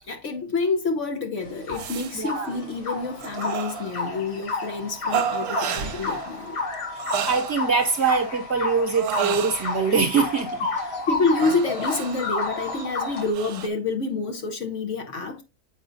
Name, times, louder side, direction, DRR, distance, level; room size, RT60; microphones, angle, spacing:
voice 1, 0.1-6.6 11.1-15.4, left 3 dB, 55° left, 1.1 m, -27 dB
sound 1, 1.4-13.3, left 3 dB, 90° left, 2.8 m, -31 dB
sound 2, 1.7-2.2 2.5-2.9 3.2-4.2 5.1-6.4 6.7-8.2 8.9-10.0 11.4-13.7, right 8 dB, 75° right, 1.2 m, -31 dB
voice 2, 2.1-2.5 7.3-10.6, right 5 dB, 50° right, 1.1 m, -23 dB
7.7 x 4.9 x 2.5 m
omnidirectional pair, 1.7 m